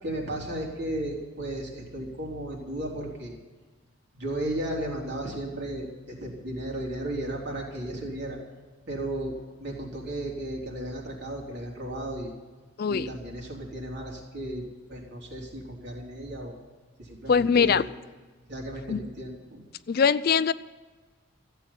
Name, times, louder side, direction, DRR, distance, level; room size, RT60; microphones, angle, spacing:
voice 1, 0.0-3.4 4.1-8.4 8.9-12.3 12.9-16.6 17.0-17.9 18.5-19.6, right 1 dB, 55° right, -2 dB, 3.6 m, -34 dB
voice 2, 12.8-13.1 17.3-17.8 18.9-19.0 19.9-20.5, left 6 dB, 45° left, 16 dB, 0.4 m, -22 dB
15.0 x 8.2 x 9.8 m, 1.3 s
head